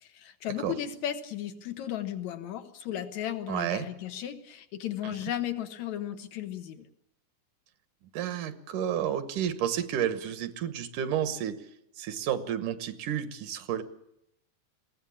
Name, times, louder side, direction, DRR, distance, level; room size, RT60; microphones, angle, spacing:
voice 1, 0.0-6.9, left 11 dB, 70° left, 9 dB, 2.6 m, -35 dB
voice 2, 3.5-3.9 5.0-5.1 8.1-11.6 12.0-13.8, right 10 dB, 80° right, 11 dB, 2.7 m, -31 dB
21.0 x 16.0 x 8.5 m, 0.82 s
omnidirectional pair, 3.6 m